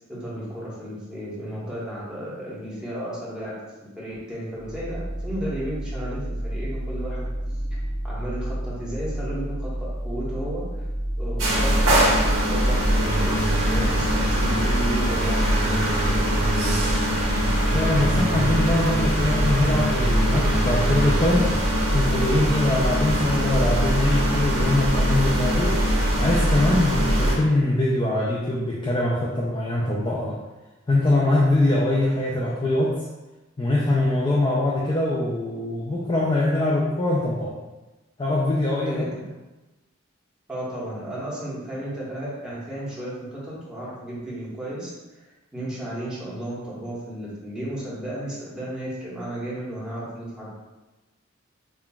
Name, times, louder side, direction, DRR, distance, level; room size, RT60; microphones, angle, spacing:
voice 1, 0.1-3.6 3.9-7.2 8.0-10.9 11.2-16.8 38.8-39.3 40.5-50.5, right 1 dB, 5° right, -9 dB, 1.1 m, -34 dB
sound 1, 4.5-14.2, right 1 dB, 65° left, 1.1 m, -31 dB
sound 2, 11.4-27.4, equal, 80° right, 1.1 m, -22 dB
sound 3, 13.0-21.3, right 2 dB, 55° right, 1.3 m, -31 dB
voice 2, 17.7-21.5 21.9-25.8 26.2-30.4 30.9-33.0 33.6-37.5 38.2-39.1, left 1 dB, 25° left, -5 dB, 0.4 m, -23 dB
5.6 x 2.3 x 2.3 m, 1.1 s
head